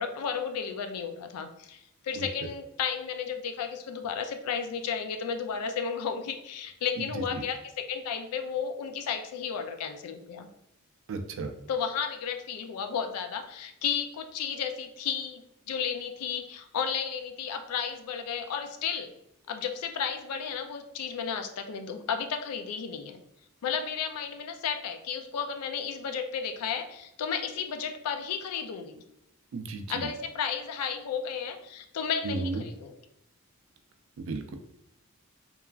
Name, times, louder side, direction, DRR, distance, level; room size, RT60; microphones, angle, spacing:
voice 1, 0.0-10.5 11.7-15.4 15.7-19.1 19.5-23.2 23.6-29.0 29.9-32.9, left 7 dB, 90° left, 6 dB, 0.4 m, -33 dB
voice 2, 7.0-7.4 11.1-11.5 29.5-30.1 32.2-32.6 34.2-34.6, right 3 dB, 60° right, 6 dB, 0.3 m, -34 dB
3.0 x 2.3 x 2.3 m, 0.82 s
head